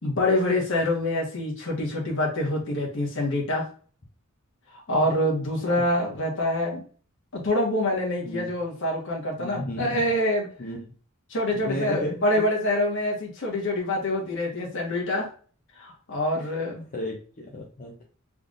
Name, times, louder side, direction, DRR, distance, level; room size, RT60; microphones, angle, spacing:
voice 1, 0.0-3.6 4.9-6.8 7.3-10.5 11.3-15.3 15.8-16.8, left 1 dB, 60° left, -2 dB, 1.4 m, -26 dB
voice 2, 9.4-10.0 10.6-10.8 11.5-12.2 16.4-16.5 16.9-18.0, left 1 dB, 35° left, -2 dB, 0.6 m, -33 dB
3.7 x 3.4 x 2.5 m, 0.42 s
head